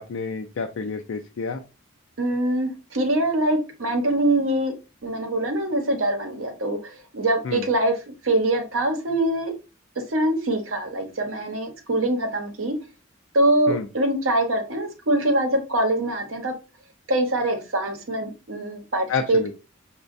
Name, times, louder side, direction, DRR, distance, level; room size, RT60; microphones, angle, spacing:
voice 1, 0.0-1.6 7.4-7.7 13.7-13.9 19.1-19.5, left 4 dB, 65° left, 4 dB, 0.4 m, -29 dB
voice 2, 2.2-4.7 5.0-7.9 8.2-9.5 10.1-12.7 13.3-16.5 17.1-19.5, right 1 dB, 70° right, 5 dB, 0.8 m, -23 dB
6.1 x 2.2 x 2.5 m, 0.30 s
head